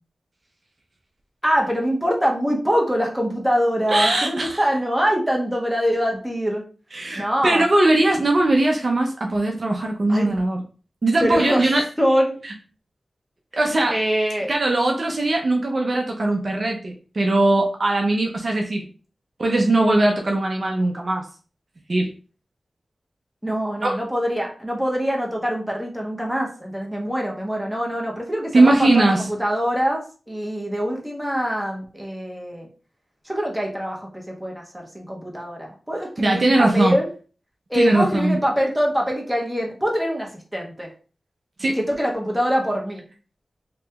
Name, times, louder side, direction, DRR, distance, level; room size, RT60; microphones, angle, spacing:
voice 1, 1.4-6.6 7.1-7.7 10.1-10.3 11.2-11.6 12.0-12.4 13.9-14.5 23.4-32.7 33.2-34.6 34.9-37.0 37.7-40.9 41.8-43.0, equal, 5° right, -1 dB, 1.1 m, -24 dB
voice 2, 3.9-4.6 6.9-10.6 11.0-11.8 12.4-12.5 13.5-14.0 14.5-18.9 19.4-21.3 21.9-22.1 23.8-24.0 28.5-29.3 36.2-36.9 37.7-38.4 41.6-41.8, right 2 dB, 50° right, 1 dB, 0.6 m, -20 dB
3.2 x 2.9 x 3.4 m, 0.38 s
wide cardioid pair, 90°, 0 cm